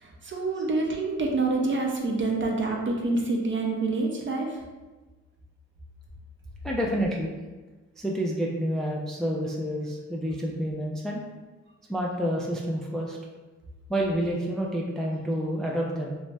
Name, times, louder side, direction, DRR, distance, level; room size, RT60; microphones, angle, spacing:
voice 1, 0.0-4.5, right 3 dB, 40° right, 0 dB, 0.6 m, -27 dB
voice 2, 6.6-7.4 8.0-11.2 11.9-13.2 13.9-16.2, equal, ahead, -1 dB, 0.4 m, -29 dB
2.6 x 2.1 x 3.2 m, 1.2 s
cardioid pair, 70°, 29 cm